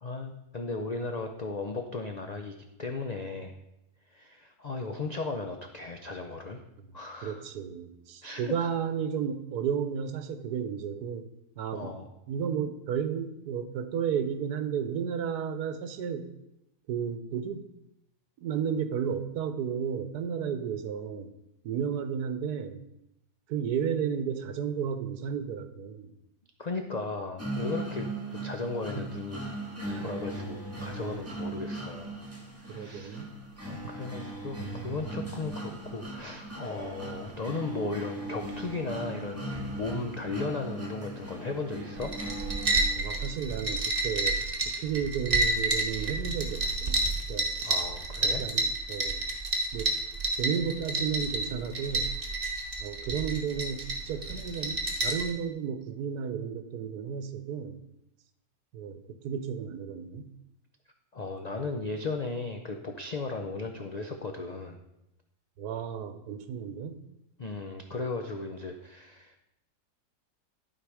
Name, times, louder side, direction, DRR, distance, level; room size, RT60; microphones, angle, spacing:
voice 1, 0.0-3.5 4.1-6.6 6.9-7.4 8.2-8.7 11.7-12.1 26.6-29.5 30.0-32.2 32.6-33.3 33.6-42.2 47.6-48.4 61.1-64.8 67.4-69.4, left 3 dB, 90° left, 4 dB, 0.3 m, -36 dB
voice 2, 7.2-11.2 11.6-11.9 12.3-16.3 16.9-17.7 18.4-21.3 21.6-22.8 23.5-26.1 28.9-29.1 29.9-30.1 32.7-33.3 36.8-37.0 43.0-44.4 44.8-47.0 47.3-47.7 48.4-49.2 49.7-49.9 50.4-52.1 52.8-57.8 58.7-60.3 63.4-63.5 65.6-67.0, right 7 dB, 75° right, 10 dB, 1.3 m, -33 dB
sound 1, 27.4-43.4, right 1 dB, 10° right, 1.6 m, -38 dB
sound 2, 42.0-55.3, right 2 dB, 35° right, 1.2 m, -30 dB
11.5 x 4.8 x 4.8 m, 0.86 s
omnidirectional pair, 1.7 m